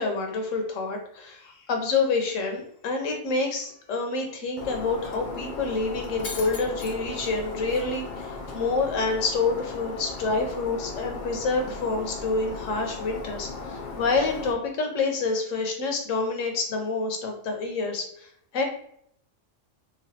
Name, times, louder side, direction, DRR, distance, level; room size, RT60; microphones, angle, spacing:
voice 1, 0.0-18.6, left 3 dB, 80° left, 3 dB, 1.1 m, -28 dB
Shatter, 4.6-14.5, left 3 dB, 65° left, 0.4 m, -37 dB
3.1 x 2.3 x 2.7 m, 0.67 s
omnidirectional pair, 1.3 m